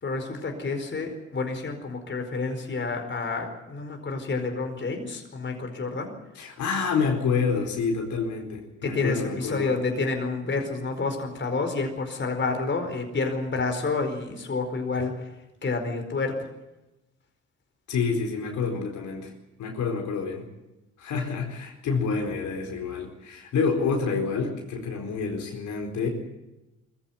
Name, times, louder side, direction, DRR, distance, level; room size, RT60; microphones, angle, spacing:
voice 1, 0.0-6.1 8.8-15.3 15.6-16.5, left 3 dB, 40° left, 4 dB, 4.7 m, -29 dB
voice 2, 6.4-9.7 17.9-19.3 19.6-20.5 21.0-26.1, left 5 dB, 75° left, 2 dB, 4.5 m, -28 dB
22.0 x 15.0 x 9.4 m, 0.99 s
cardioid pair, 90°, 30 cm